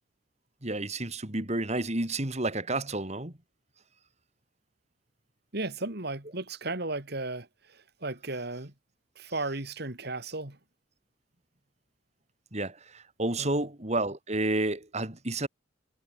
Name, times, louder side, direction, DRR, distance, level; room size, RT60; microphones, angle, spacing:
voice 1, 0.6-3.3 12.5-15.5, right 2 dB, 35° right, 3.0 m, -30 dB
voice 2, 5.5-7.5 8.0-8.7 9.2-10.6 13.4-13.6, right 2 dB, 55° right, 3.0 m, -34 dB
head